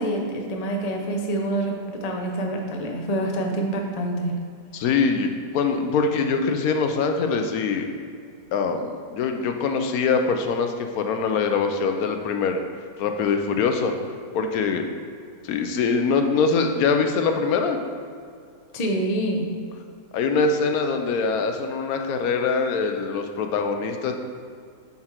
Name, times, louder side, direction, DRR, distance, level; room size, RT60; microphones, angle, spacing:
voice 1, 0.0-4.4 18.7-19.5, right 1 dB, 35° left, 1 dB, 0.7 m, -26 dB
voice 2, 4.7-7.9 8.5-12.6 13.0-13.9 14.3-14.8 15.4-17.8 20.1-24.1, left 5 dB, 85° left, 5 dB, 1.1 m, -23 dB
7.5 x 4.4 x 4.4 m, 2.2 s
omnidirectional pair, 1.5 m